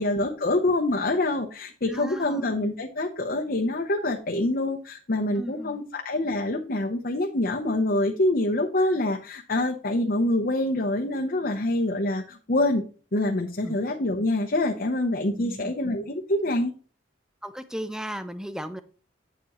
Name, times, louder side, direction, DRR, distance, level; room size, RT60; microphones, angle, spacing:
voice 1, 0.0-12.8 13.1-16.7, left 1 dB, 50° left, 3 dB, 0.9 m, -26 dB
voice 2, 1.9-2.6 5.4-5.8 13.6-13.8 15.3-15.7 17.4-18.8, equal, 5° right, 11 dB, 0.6 m, -36 dB
9.1 x 7.1 x 3.1 m, 0.38 s
head